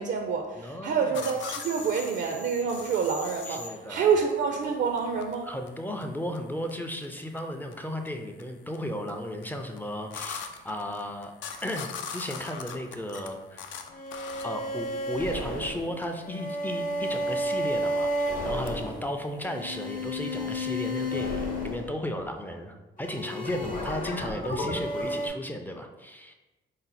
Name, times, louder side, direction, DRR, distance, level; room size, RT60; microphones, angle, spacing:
voice 1, 0.0-5.5, right 6 dB, 60° right, 4 dB, 0.4 m, -27 dB
voice 2, 0.6-1.2 3.5-4.1 5.4-11.3 11.6-13.7 14.4-26.3, left 1 dB, 10° left, 4 dB, 0.4 m, -35 dB
sound 1, 1.1-20.0, left 6 dB, 70° left, 0.4 m, -42 dB
sound 2, 13.9-22.4 23.0-25.3, equal, 45° left, 0.8 m, -32 dB
4.0 x 2.0 x 4.0 m, 1.1 s
cardioid pair, 90°, 20 cm